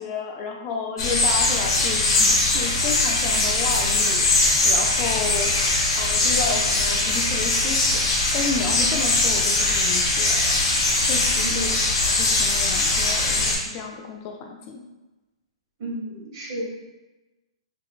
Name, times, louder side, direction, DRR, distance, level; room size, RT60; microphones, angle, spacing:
voice 1, 0.0-5.7 6.0-10.6 11.1-11.7 12.0-14.8, left 4 dB, 30° left, 2 dB, 0.3 m, -31 dB
sound 1, 1.0-13.6, left 2 dB, 50° left, 1.0 m, -21 dB
voice 2, 11.4-11.8 15.8-16.6, right 1 dB, 40° right, -2 dB, 1.0 m, -32 dB
3.4 x 2.9 x 2.2 m, 1.1 s
hypercardioid pair, 150°, 3 cm